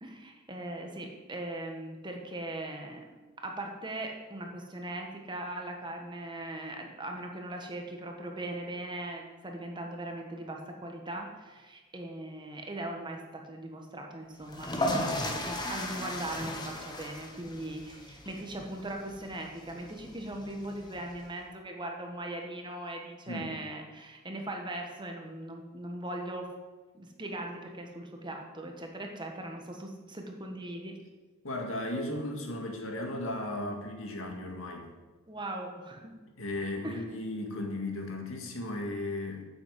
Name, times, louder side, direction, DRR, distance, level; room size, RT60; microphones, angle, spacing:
voice 1, 0.0-3.0 3.4-26.5 26.9-31.0 35.3-36.1 36.8-37.0, right 1 dB, 20° right, 2 dB, 1.4 m, -39 dB
sound 1, 14.4-21.2, left 1 dB, 20° left, 1.3 m, -36 dB
voice 2, 31.4-34.9 36.4-39.4, left 1 dB, 70° left, 2 dB, 2.0 m, -35 dB
8.5 x 7.8 x 7.6 m, 1.3 s
head